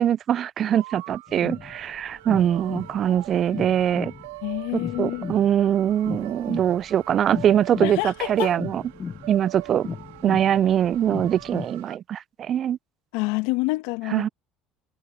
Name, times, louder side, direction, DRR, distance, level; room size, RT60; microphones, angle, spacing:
voice 1, 0.0-4.1 4.7-8.8 9.3-9.9 10.2-12.8 14.1-14.3, right 10 dB, 45° right, 0.3 m, -22 dB
sound 1, 0.7-12.0, right 22 dB, 80° right, 2.3 m, -42 dB
sound 2, 1.3-11.7, left 6 dB, 35° left, 0.9 m, -37 dB
voice 2, 4.4-5.2 7.8-8.5 13.1-14.3, left 24 dB, 75° left, 1.4 m, -27 dB
hypercardioid pair, 75°, 0 cm